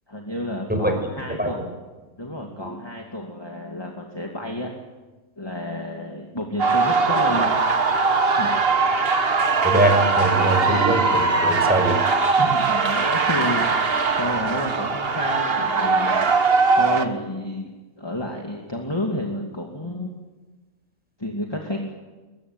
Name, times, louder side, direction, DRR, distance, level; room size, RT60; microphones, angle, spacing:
voice 1, 0.1-1.6 2.2-4.7 5.4-7.6 8.3-8.5 12.4-17.7 18.0-20.1 21.2-21.9, left 1 dB, 15° left, 1 dB, 2.5 m, -31 dB
voice 2, 0.7-1.0 1.4-1.5 9.6-12.0, right 2 dB, 5° right, 4 dB, 5.4 m, -22 dB
sound 1, 6.6-17.1, right 4 dB, 45° right, 1.6 m, -20 dB
22.5 x 22.0 x 9.5 m, 1.2 s
omnidirectional pair, 1.4 m